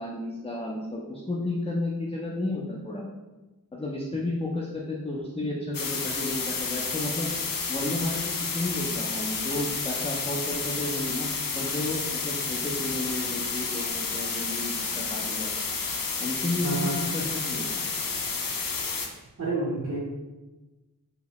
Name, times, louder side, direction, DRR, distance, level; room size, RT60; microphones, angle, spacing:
voice 1, 0.0-3.1 3.7-7.3 7.7-15.5 16.2-17.8, left 1 dB, 15° left, -3 dB, 0.4 m, -32 dB
sound 1, 5.7-19.1, left 4 dB, 70° left, 0.5 m, -30 dB
voice 2, 16.6-17.0 19.4-20.0, right 2 dB, 60° right, -7 dB, 0.7 m, -29 dB
3.1 x 2.8 x 2.9 m, 1.1 s
wide cardioid pair, 55°, 36 cm